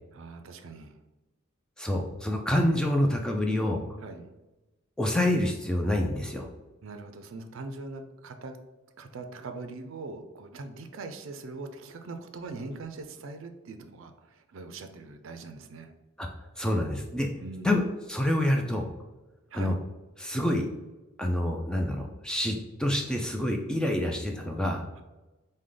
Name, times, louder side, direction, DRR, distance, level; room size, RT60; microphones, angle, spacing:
voice 1, 0.1-1.0 4.0-4.3 6.8-8.6 9.0-15.9 17.4-17.7 19.5-19.7 25.0-25.1, right 3 dB, 65° right, 7 dB, 0.4 m, -41 dB
voice 2, 1.8-3.8 5.0-6.5 16.2-16.3 16.6-17.3 17.6-17.8 18.1-18.9 19.5-19.7 20.2-20.6 21.2-22.5 22.8-24.8, left 1 dB, 5° left, 2 dB, 0.3 m, -27 dB
4.8 x 2.2 x 3.7 m, 1.1 s
head